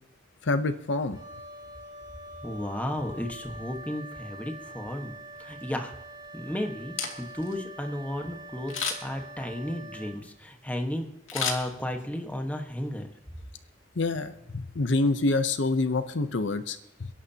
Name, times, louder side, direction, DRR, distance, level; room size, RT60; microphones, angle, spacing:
voice 1, 0.4-1.2 14.0-17.1, left 2 dB, 65° left, 10 dB, 0.8 m, -27 dB
Wind instrument woodwind instrument, 1.1-10.2, right 2 dB, 20° right, 3.1 m, -45 dB
voice 2, 2.4-5.1 5.4-5.9 6.3-13.1, left 1 dB, 10° left, 4 dB, 1.3 m, -34 dB
Camera, 6.8-7.5 8.7-9.2 11.3-12.2 12.6-12.7, left 6 dB, 90° left, 2.5 m, -32 dB
29.5 x 11.0 x 2.9 m, 0.87 s
head